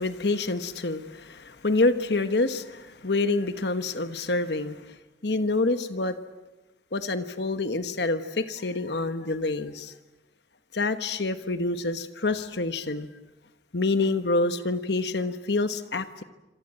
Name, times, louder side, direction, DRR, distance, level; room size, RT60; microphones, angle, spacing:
voice 1, 0.0-4.9 5.2-6.2 6.9-9.9 10.7-13.1 13.7-16.2, left 2 dB, 65° left, 9 dB, 1.3 m, -27 dB
28.0 x 26.0 x 7.8 m, 1.1 s
head